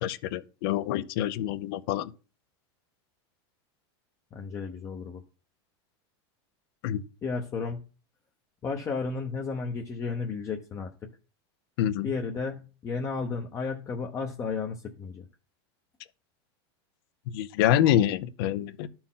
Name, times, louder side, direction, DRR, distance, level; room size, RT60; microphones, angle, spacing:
voice 1, 0.0-2.1 6.8-7.0 11.8-12.1 17.3-18.9, left 11 dB, 60° left, 0.6 m, -26 dB
voice 2, 4.3-5.2 7.2-7.8 8.6-10.9 12.0-15.3, left 4 dB, 20° left, 0.8 m, -33 dB
12.5 x 4.4 x 3.8 m
supercardioid pair, 150°, 14 cm